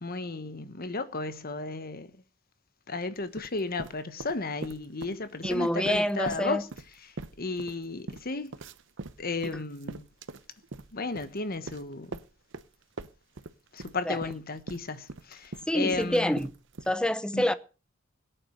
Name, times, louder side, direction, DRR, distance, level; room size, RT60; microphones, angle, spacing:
voice 1, 0.0-2.1 2.9-6.6 7.4-8.6 9.2-10.1 10.9-12.2 13.7-16.4 17.3-17.5, left 3 dB, 45° left, 1.3 m, -34 dB
sound 1, 3.2-5.2 5.4-12.7 13.0-16.9, right 3 dB, 60° right, 0.9 m, -42 dB
voice 2, 5.4-6.6 14.1-14.2 15.7-16.5 16.9-17.5, equal, 5° left, 0.8 m, -27 dB
17.5 x 9.0 x 6.4 m
head